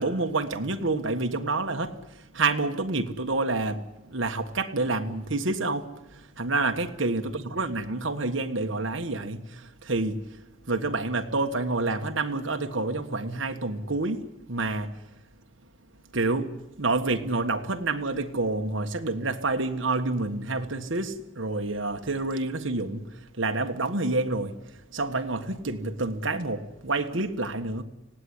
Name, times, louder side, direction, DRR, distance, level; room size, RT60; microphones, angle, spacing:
voice 1, 0.0-10.2 10.7-14.2 14.5-14.9 16.1-24.5 24.9-27.8, right 3 dB, 65° right, 1.6 m, -28 dB
25.5 x 18.0 x 9.8 m
head